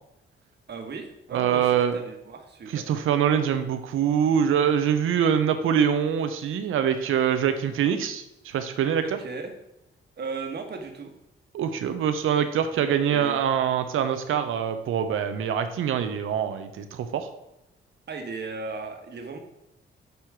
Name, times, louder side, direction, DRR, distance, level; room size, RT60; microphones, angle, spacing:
voice 1, 0.7-2.8 9.0-9.5 10.2-11.1 13.1-13.4 18.1-19.4, right 4 dB, 55° right, 4 dB, 1.4 m, -36 dB
voice 2, 1.3-1.9 2.7-9.0 11.5-17.3, right 8 dB, 80° right, 8 dB, 0.8 m, -24 dB
8.5 x 3.0 x 6.0 m, 0.83 s
cardioid pair, 75°, 21 cm